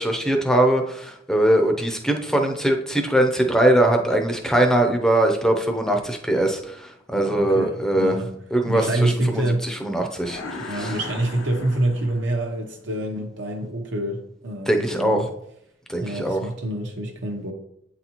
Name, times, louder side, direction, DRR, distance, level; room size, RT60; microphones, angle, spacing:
voice 1, 0.0-8.2 8.5-10.9 14.7-15.2 15.9-16.4, right 1 dB, 5° left, 3 dB, 0.6 m, -21 dB
voice 2, 7.1-8.3 8.6-9.7 10.6-15.3 16.0-17.5, right 1 dB, 65° right, 1 dB, 0.8 m, -26 dB
sound 1, 10.2-12.5, left 3 dB, 90° left, 0.9 m, -36 dB
8.4 x 4.1 x 2.9 m, 0.76 s
head